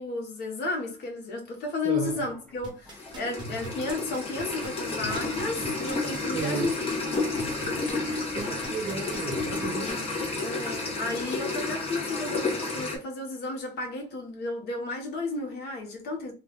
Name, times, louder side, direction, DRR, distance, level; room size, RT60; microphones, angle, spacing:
voice 1, 0.0-6.8 9.8-10.0 10.4-16.3, left 3 dB, 70° left, 1.2 m, -33 dB
voice 2, 1.8-2.2 6.3-6.7 8.3-10.0, right 7 dB, 40° right, 0.4 m, -34 dB
sound 1, 2.0-8.8 9.1-9.5, left 1 dB, 5° left, 0.8 m, -46 dB
sound 2, 2.6-10.1 10.6-10.7, right 3 dB, 25° right, 1.1 m, -43 dB
sound 3, 2.9-13.0, left 3 dB, 35° left, 1.0 m, -31 dB
2.6 x 2.5 x 3.4 m
cardioid pair, 110°, 17 cm